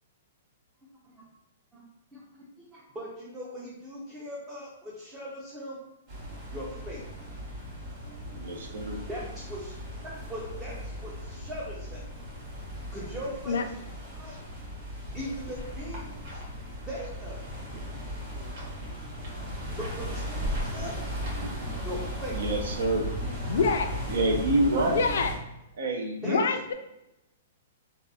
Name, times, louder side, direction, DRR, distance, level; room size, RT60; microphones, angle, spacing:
voice 1, 2.7-5.8 6.5-7.0 9.1-9.7 10.0-12.0 12.9-13.6 14.2-14.4 15.1-16.4 16.9-17.4 19.7-21.0 21.8-22.4 26.2-26.4, equal, 10° right, -5 dB, 0.5 m, -39 dB
sound 1, 6.1-25.3, equal, 30° right, 1.0 m, -37 dB
voice 2, 8.3-9.0 21.4-21.6 22.3-23.1 24.1-25.0 25.8-26.4, right 2 dB, 80° right, 3 dB, 0.5 m, -27 dB
sound 2, 15.4-21.7, equal, 60° right, 1.1 m, -48 dB
voice 3, 23.5-24.0 24.8-25.3 26.2-26.7, left 5 dB, 75° left, 6 dB, 0.3 m, -26 dB
2.8 x 2.3 x 2.2 m, 0.88 s
hypercardioid pair, 160°, 0 cm